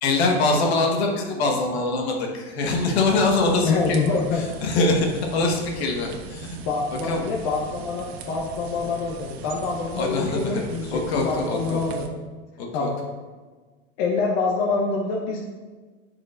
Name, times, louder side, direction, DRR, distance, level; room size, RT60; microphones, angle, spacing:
voice 1, 0.0-6.6 7.0-7.3 9.9-10.6 10.9-11.8 12.6-12.9, left 3 dB, 75° left, 1 dB, 1.5 m, -23 dB
sound 1, 2.6-12.1, right 6 dB, 70° right, 0.9 m, -39 dB
voice 2, 3.6-4.5 6.6-12.1 12.7-13.0 14.0-15.4, left 4 dB, 55° left, -1 dB, 1.0 m, -26 dB
10.0 x 4.9 x 2.6 m, 1.4 s
supercardioid pair, 120°, 32 cm